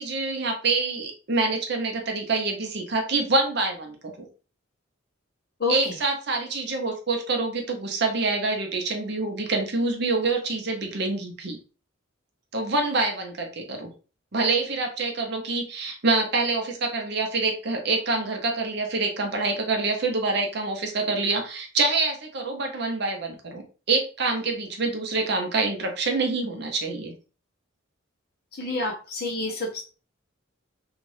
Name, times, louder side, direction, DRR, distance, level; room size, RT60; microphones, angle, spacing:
voice 1, 0.0-4.3 5.7-11.6 12.5-13.9 14.3-23.6 23.9-27.1, right 3 dB, 55° right, 4 dB, 0.7 m, -26 dB
voice 2, 5.6-5.9 28.5-29.8, left 2 dB, 50° left, 0 dB, 0.9 m, -28 dB
2.6 x 2.4 x 3.2 m, 0.36 s
head